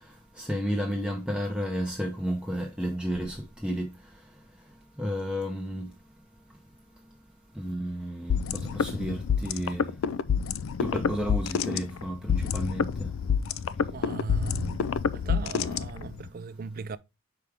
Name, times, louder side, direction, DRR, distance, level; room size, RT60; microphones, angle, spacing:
voice 1, 0.4-3.4 3.6-3.9 5.0-5.9 7.6-8.4 8.7-9.9 10.8-13.1, equal, 5° right, 0.7 m, -31 dB
sound 1, 8.3-16.3, left 7 dB, 65° left, 0.4 m, -28 dB
voice 2, 13.9-17.0, right 4 dB, 40° right, 0.3 m, -37 dB
5.9 x 4.9 x 3.4 m
head